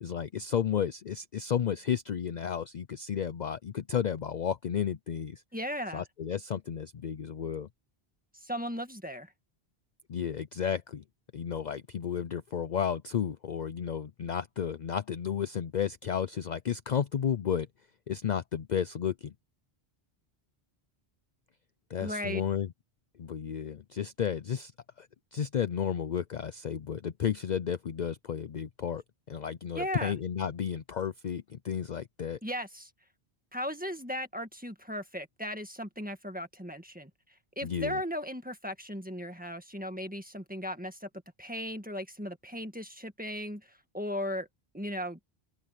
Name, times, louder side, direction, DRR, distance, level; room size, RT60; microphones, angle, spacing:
voice 1, 0.0-5.4 5.9-7.7 10.1-11.0 11.3-17.7 18.1-19.3 21.9-22.7 23.2-24.7 25.0-32.4 37.6-38.0, left 8 dB, 50° left, 0.6 m, -32 dB
voice 2, 5.5-6.0 8.3-9.3 22.0-22.4 29.7-30.1 32.4-32.9 33.5-37.1 37.5-41.1 41.4-43.6 43.9-44.5 44.7-45.2, equal, 10° right, 1.6 m, -36 dB
open air
omnidirectional pair, 1.1 m